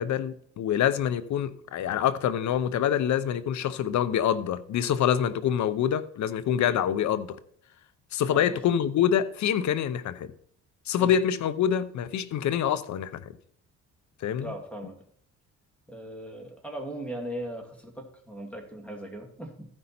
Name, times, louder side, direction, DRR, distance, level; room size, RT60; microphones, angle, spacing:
voice 1, 0.0-7.4 8.1-10.3 10.9-13.3 14.2-14.5, left 9 dB, 70° left, 0.8 m, -26 dB
voice 2, 8.3-8.7 11.0-11.1 14.4-15.0 15.9-19.7, right 1 dB, 5° left, 2.5 m, -39 dB
14.0 x 5.4 x 4.3 m
cardioid pair, 90°, 30 cm